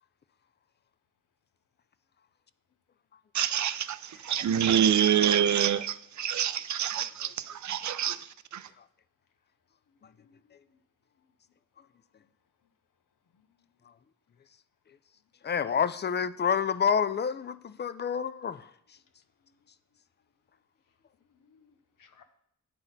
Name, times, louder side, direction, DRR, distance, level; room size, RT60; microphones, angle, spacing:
voice 1, 3.3-8.2 8.5-8.6, right 9 dB, 65° right, 0.4 m, -26 dB
voice 2, 4.1-4.9 10.2-10.4 21.4-22.2, left 5 dB, 85° left, 0.7 m, -57 dB
voice 3, 15.4-18.7, left 7 dB, 35° left, 0.4 m, -28 dB
9.6 x 4.1 x 4.0 m
cardioid pair, 60°, 32 cm